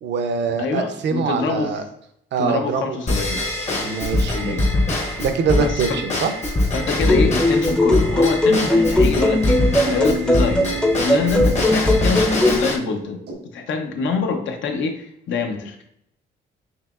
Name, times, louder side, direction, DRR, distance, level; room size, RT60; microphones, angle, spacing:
voice 1, 0.0-1.8 2.3-3.0 3.8-4.6 5.2-6.3, right 5 dB, 60° right, 8 dB, 0.6 m, -23 dB
voice 2, 0.6-1.7 2.4-3.4 4.3-4.7 5.6-6.0 6.7-13.2 13.5-15.8, left 4 dB, 70° left, 4 dB, 0.7 m, -25 dB
Drum kit / Drum / Bell, 3.1-12.8, left 1 dB, 35° left, 0.8 m, -23 dB
sound 1, 7.0-12.6, left 1 dB, 5° left, 0.5 m, -19 dB
sound 2, 8.8-13.3, right 1 dB, 85° right, 1.3 m, -40 dB
5.6 x 3.0 x 2.4 m, 0.74 s
cardioid pair, 90°, 20 cm